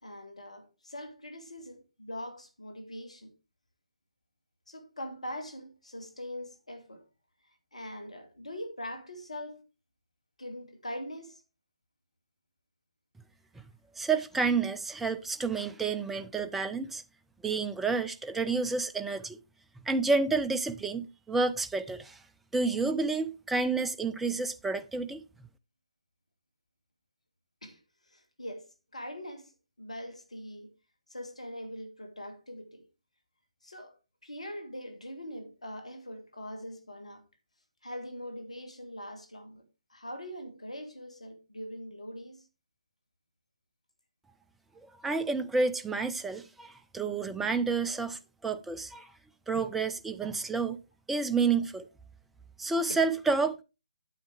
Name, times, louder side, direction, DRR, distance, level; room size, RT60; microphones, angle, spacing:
voice 1, 0.0-3.3 4.7-7.1 7.7-9.6 10.4-11.4 27.6-27.8 28.1-29.5 29.8-30.7 31.1-32.9 33.6-34.0 34.2-37.2 37.8-42.5 52.9-53.1, equal, 75° left, 2.2 m, -42 dB
voice 2, 14.0-17.0 17.4-19.4 19.9-22.2 22.5-25.2 44.8-49.1 49.5-50.8 51.1-51.9 52.6-53.6, right 4 dB, 5° right, 0.5 m, -30 dB
9.3 x 7.5 x 3.4 m
figure-of-eight pair, 135°, 4 cm